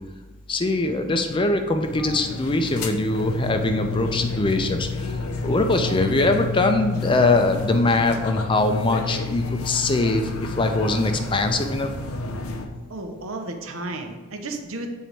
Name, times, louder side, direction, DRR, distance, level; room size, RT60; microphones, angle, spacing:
voice 1, 0.5-11.9, left 2 dB, 25° left, 6 dB, 0.4 m, -22 dB
sound 1, 1.8-12.7, left 4 dB, 85° left, 0.7 m, -30 dB
voice 2, 12.9-14.9, right 2 dB, 70° right, 5 dB, 0.8 m, -33 dB
7.5 x 4.0 x 4.4 m, 1.2 s
head